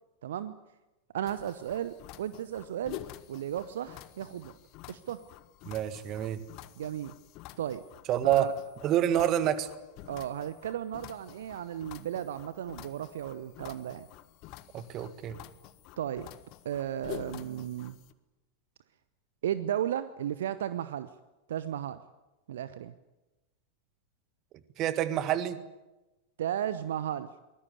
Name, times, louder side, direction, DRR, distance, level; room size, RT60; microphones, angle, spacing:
voice 1, 0.2-0.6 1.1-3.0 3.3-4.5 4.9-5.2 6.8-7.1 7.6-7.8 8.2-8.5 10.1-14.0 16.0-16.3 16.6-18.0 19.4-21.1 21.5-22.0 22.5-22.9 26.4-27.3, right 10 dB, 60° right, 14 dB, 0.9 m, -34 dB
sound 1, 1.3-18.1, left 14 dB, 40° left, 1.4 m, -48 dB
voice 2, 5.7-6.4 8.1-8.5 8.8-9.7 14.7-15.4 24.8-25.6, right 11 dB, 35° right, 13 dB, 1.8 m, -27 dB
24.0 x 20.0 x 9.7 m, 1.1 s
figure-of-eight pair, 90°, 0 cm